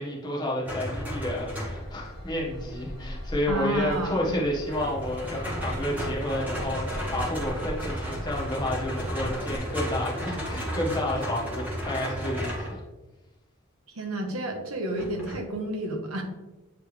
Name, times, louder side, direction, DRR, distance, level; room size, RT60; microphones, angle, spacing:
voice 1, 0.0-12.8, left 1 dB, 20° left, -5 dB, 1.4 m, -30 dB
sound 1, 0.6-2.0 4.7-12.8 15.0-15.4, equal, 5° right, 1.4 m, -33 dB
Train / Engine, 0.8-9.6, equal, 55° right, 2.0 m, -40 dB
voice 2, 3.5-4.4 13.9-16.2, equal, 80° right, 3 dB, 1.0 m, -31 dB
8.2 x 3.5 x 3.3 m, 1.1 s
head